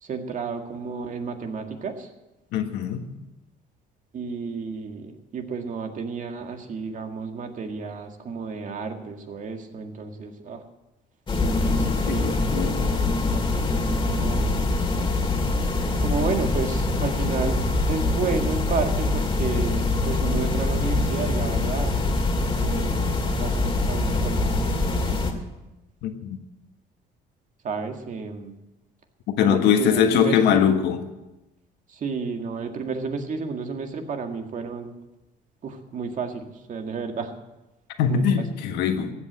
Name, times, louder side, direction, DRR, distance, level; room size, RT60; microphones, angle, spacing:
voice 1, 0.0-2.1 4.1-10.6 11.6-14.6 16.0-17.6 17.9-22.0 22.5-25.4 27.6-28.5 29.4-30.7 31.9-34.9 35.6-37.3 38.1-38.4, right 5 dB, 50° right, 5 dB, 1.8 m, -32 dB
voice 2, 2.5-3.1 12.1-12.9 26.0-26.1 29.4-31.0 38.0-39.1, left 8 dB, 85° left, 6 dB, 1.5 m, -21 dB
sound 1, 11.3-25.3, left 2 dB, 30° left, 2.2 m, -24 dB
15.0 x 8.2 x 7.9 m, 1.0 s
cardioid pair, 110°, 17 cm